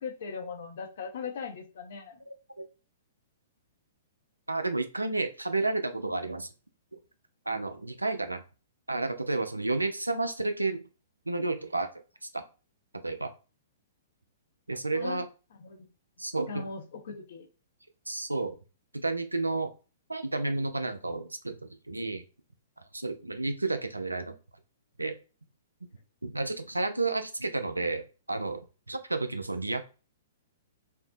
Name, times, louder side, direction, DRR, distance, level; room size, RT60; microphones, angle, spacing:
voice 1, 0.0-2.2 14.9-15.2 15.6-15.9 16.5-17.5, left 5 dB, 55° left, 0.5 m, -39 dB
voice 2, 2.3-2.7 4.5-6.5 7.5-8.4 8.9-10.8 11.3-11.9 12.3-12.4 13.0-13.3 14.7-15.3 16.2-16.6 18.1-18.6 19.0-19.7 20.1-22.2 22.9-24.3 25.0-25.1 26.2-28.0 28.3-28.6 28.9-29.8, right 2 dB, 85° right, 0.3 m, -31 dB
2.6 x 2.0 x 2.5 m
figure-of-eight pair, 110°, 0 cm